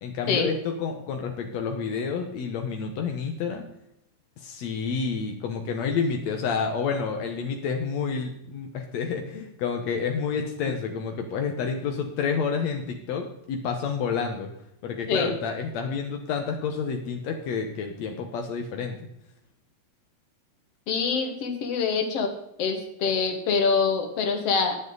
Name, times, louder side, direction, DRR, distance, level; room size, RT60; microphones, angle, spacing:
voice 1, 0.0-3.6 4.4-14.5 14.8-19.0, left 5 dB, 70° left, 3 dB, 1.6 m, -29 dB
voice 2, 20.9-22.3 22.6-24.8, left 5 dB, 50° left, 5 dB, 2.2 m, -25 dB
21.0 x 7.8 x 4.0 m, 0.78 s
omnidirectional pair, 4.8 m